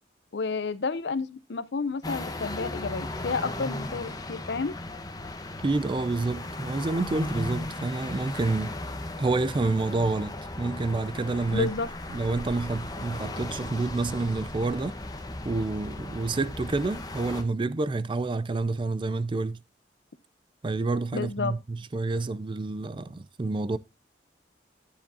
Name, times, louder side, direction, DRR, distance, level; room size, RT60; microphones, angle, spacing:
voice 1, 0.3-4.7 11.5-11.9 21.1-21.5, left 4 dB, 70° left, 0.7 m, -30 dB
sound 1, 2.0-17.4, left 2 dB, 20° left, 1.0 m, -36 dB
voice 2, 5.6-8.8 9.2-11.7 12.1-15.0 15.4-19.6 20.6-23.8, right 3 dB, 25° right, 0.4 m, -28 dB
10.0 x 7.1 x 2.6 m
head